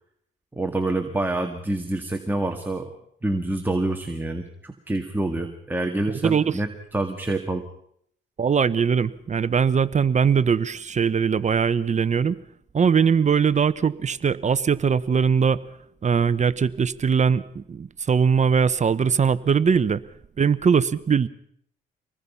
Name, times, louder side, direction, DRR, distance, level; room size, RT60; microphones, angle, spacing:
voice 1, 0.5-2.9 3.2-7.6, right 2 dB, 10° right, 4 dB, 2.1 m, -27 dB
voice 2, 6.2-6.6 8.4-12.4 12.7-15.6 16.0-20.0 20.4-21.3, right 6 dB, 35° right, 16 dB, 1.0 m, -21 dB
26.0 x 20.0 x 5.7 m, 0.68 s
cardioid pair, 90°, 20 cm